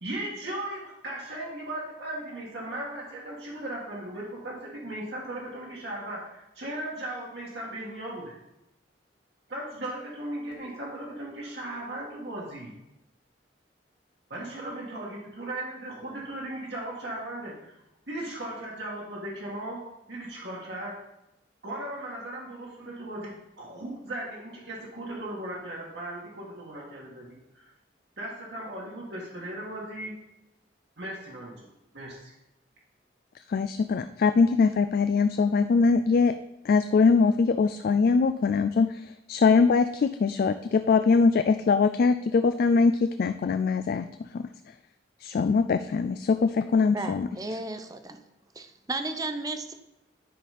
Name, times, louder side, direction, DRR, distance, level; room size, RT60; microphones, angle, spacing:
voice 1, 0.0-8.4 9.5-12.7 14.3-17.7 18.1-19.8 20.1-20.9 21.6-27.7 28.2-30.1 31.0-32.3, right 1 dB, 65° right, -5 dB, 1.8 m, -37 dB
voice 2, 33.5-36.3 36.6-44.1 44.3-44.4 45.2-47.3, left 4 dB, 55° left, 9 dB, 0.3 m, -22 dB
voice 3, 46.9-48.2 48.6-49.7, right 2 dB, 20° right, 9 dB, 0.5 m, -34 dB
10.0 x 4.1 x 5.1 m, 0.89 s
head